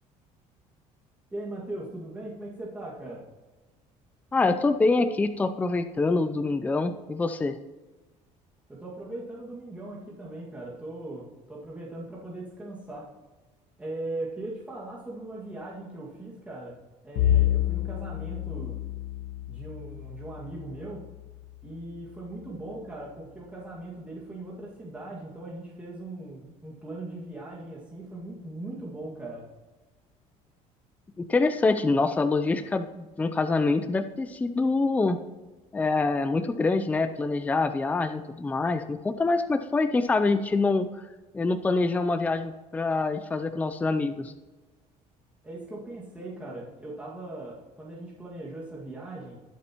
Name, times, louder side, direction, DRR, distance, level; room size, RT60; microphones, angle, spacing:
voice 1, 1.3-3.2 8.7-13.1 13.8-18.8 19.4-21.0 21.6-29.5 45.4-49.4, right 2 dB, 10° right, -6 dB, 2.0 m, -39 dB
voice 2, 4.3-7.5 31.2-35.2 35.7-40.9 41.3-44.3, left 3 dB, 10° left, 9 dB, 0.4 m, -25 dB
Bowed string instrument, 17.1-21.7, left 12 dB, 70° left, 1.4 m, -29 dB
19.5 x 7.6 x 3.0 m, 1.2 s
cardioid pair, 145°, 14 cm